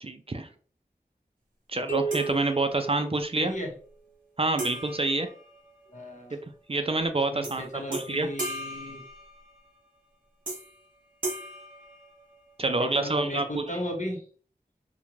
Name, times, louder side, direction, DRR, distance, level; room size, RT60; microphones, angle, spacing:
voice 1, 0.0-0.5 1.7-3.5 4.4-5.3 6.3-6.4 6.7-8.3 12.6-13.7, right 2 dB, 40° right, 7 dB, 0.4 m, -27 dB
sound 1, 1.9-3.8, right 4 dB, 10° left, 0.8 m, -34 dB
sound 2, 2.1-3.1 4.6-6.2 7.4-7.6 7.9-9.7 10.5-10.9 11.2-12.7, right 1 dB, 55° right, 0.9 m, -38 dB
voice 2, 3.4-3.7 5.9-6.4 7.3-9.0 12.6-14.2, left 1 dB, 50° left, 1 dB, 0.8 m, -36 dB
2.5 x 2.1 x 3.0 m, 0.41 s
wide cardioid pair, 45°, 16 cm